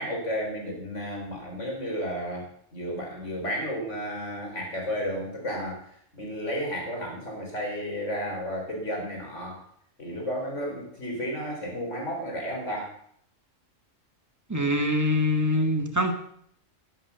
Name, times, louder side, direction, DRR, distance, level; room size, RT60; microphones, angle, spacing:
voice 1, 0.0-9.6 10.0-12.9, equal, 65° left, 0 dB, 4.3 m, -32 dB
voice 2, 14.5-16.1, left 1 dB, 15° right, 5 dB, 1.7 m, -24 dB
11.5 x 10.5 x 6.8 m, 0.67 s
omnidirectional pair, 1.3 m